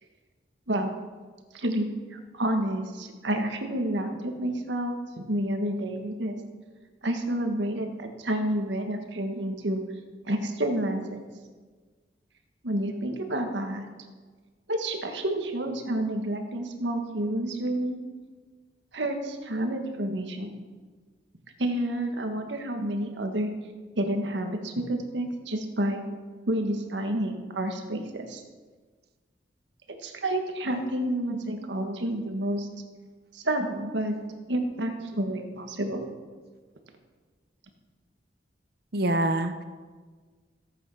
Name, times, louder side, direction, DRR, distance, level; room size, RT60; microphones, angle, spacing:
voice 1, 1.5-6.4 7.0-9.8 10.2-11.2 12.6-13.9 14.7-18.0 18.9-20.5 21.6-23.5 23.9-26.0 26.5-28.4 29.9-32.7 33.3-34.2 34.5-36.0, right 1 dB, 85° right, 4 dB, 1.7 m, -29 dB
voice 2, 31.6-32.0 38.9-39.6, right 1 dB, 60° right, 9 dB, 0.9 m, -27 dB
15.5 x 8.6 x 5.8 m, 1.5 s
head